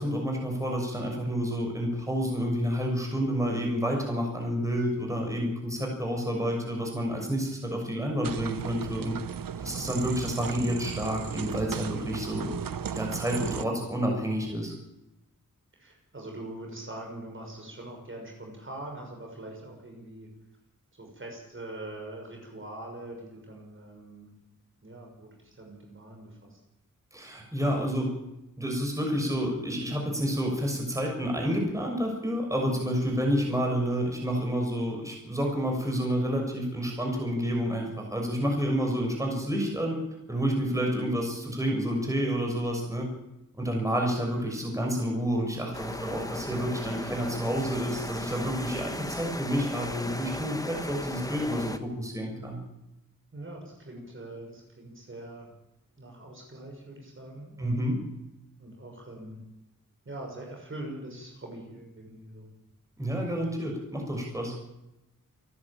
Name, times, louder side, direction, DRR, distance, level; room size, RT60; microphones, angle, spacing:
voice 1, 0.0-9.1 9.6-12.5 12.9-14.7 27.1-28.1 28.6-40.0 40.3-43.1 43.6-52.6 57.6-58.0 63.0-64.5, equal, 10° right, 0 dB, 6.5 m, -29 dB
sound 1, 8.2-13.7, right 8 dB, 85° right, 0.9 m, -36 dB
voice 2, 9.6-9.9 15.7-20.3 20.9-24.3 24.8-26.6 32.7-33.0 40.7-40.9 43.8-44.0 53.3-55.5 56.0-57.9 58.6-59.4 60.0-62.5, right 1 dB, 40° right, 1 dB, 6.6 m, -43 dB
sound 2, 45.7-51.8, left 1 dB, 10° left, 1.3 m, -36 dB
28.5 x 11.5 x 8.9 m, 0.90 s
wide cardioid pair, 120°, 33 cm